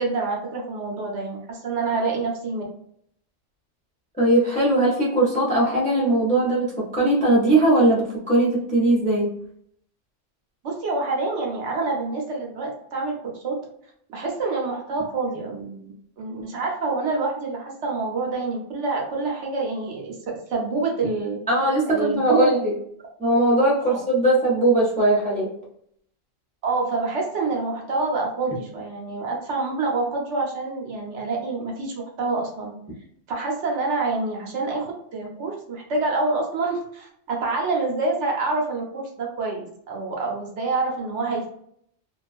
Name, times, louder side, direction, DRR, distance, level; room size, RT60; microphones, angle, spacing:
voice 1, 0.0-2.6 10.6-13.6 14.1-20.2 20.5-21.4 21.9-22.5 23.9-24.0 26.6-32.7 33.3-41.5, right 3 dB, 65° right, -1 dB, 1.0 m, -27 dB
voice 2, 4.2-9.3 21.5-22.8 23.2-25.5, right 1 dB, 10° left, -5 dB, 0.4 m, -20 dB
2.4 x 2.3 x 2.4 m, 0.68 s
omnidirectional pair, 1.3 m